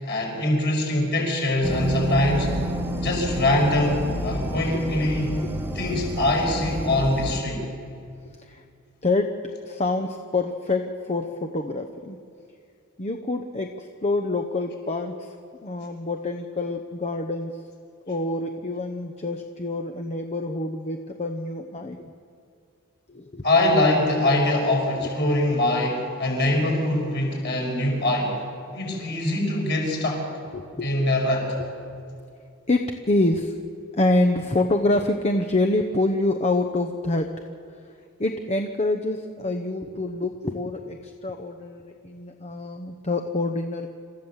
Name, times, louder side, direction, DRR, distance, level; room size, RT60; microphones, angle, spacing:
voice 1, 0.0-2.5 3.0-5.4 5.8-7.7 23.4-28.4 28.7-30.3 30.8-31.5, left 1 dB, 50° left, 0 dB, 5.6 m, -23 dB
sound 1, 1.6-7.4, right 1 dB, 10° right, 1.2 m, -29 dB
voice 2, 9.0-12.2 13.0-15.3 15.6-17.6 18.1-22.0 23.1-23.4 24.9-25.1 30.5-31.1 31.9-32.0 32.7-33.6 33.9-37.3 38.2-43.9, left 2 dB, 30° left, 5 dB, 0.8 m, -26 dB
27.5 x 14.5 x 7.3 m, 2.4 s
head